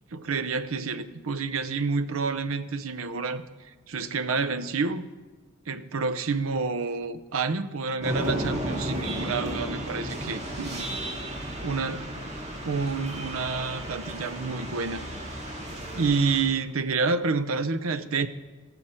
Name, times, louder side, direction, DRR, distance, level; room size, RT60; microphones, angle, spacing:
voice 1, 0.1-3.5 3.9-5.1 5.7-11.0 11.6-12.1 12.6-15.1 15.9-18.3, right 4 dB, 65° right, 13 dB, 0.7 m, -28 dB
sound 1, 8.0-16.4, equal, 30° right, 2.0 m, -34 dB
14.0 x 12.0 x 4.4 m, 1.3 s
head